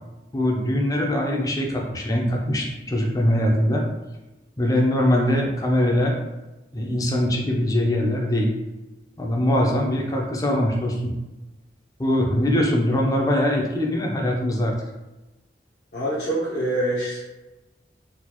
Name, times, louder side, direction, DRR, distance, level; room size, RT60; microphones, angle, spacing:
voice 1, 0.3-3.9 4.6-6.2 6.7-8.6 9.2-11.1 12.0-14.7, left 1 dB, 20° left, 0 dB, 0.5 m, -22 dB
voice 2, 15.9-17.2, right 1 dB, 65° left, -10 dB, 0.9 m, -25 dB
4.0 x 2.4 x 2.9 m, 1.0 s
head